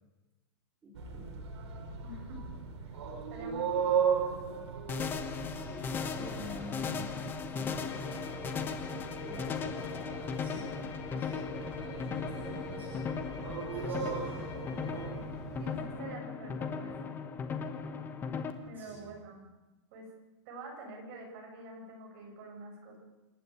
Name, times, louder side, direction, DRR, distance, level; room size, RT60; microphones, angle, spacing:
voice 1, 0.8-1.4 5.5-8.7 9.2-10.7 11.1-13.3 13.7-14.8 18.7-19.1, left 1 dB, 10° right, -5 dB, 3.9 m, -47 dB
sound 1, 0.9-15.8, right 7 dB, 70° right, 4.3 m, -37 dB
voice 2, 2.0-2.4 3.3-4.7 15.6-17.2 18.6-19.5 19.9-20.1 20.5-23.0, right 2 dB, 35° right, 1 dB, 7.0 m, -47 dB
sound 2, 4.9-18.5, left 6 dB, 15° left, 1.2 m, -37 dB
sound 3, 7.9-15.2, left 5 dB, 60° left, 8.0 m, -47 dB
27.0 x 13.0 x 8.4 m, 1.1 s
supercardioid pair, 170°, 16 cm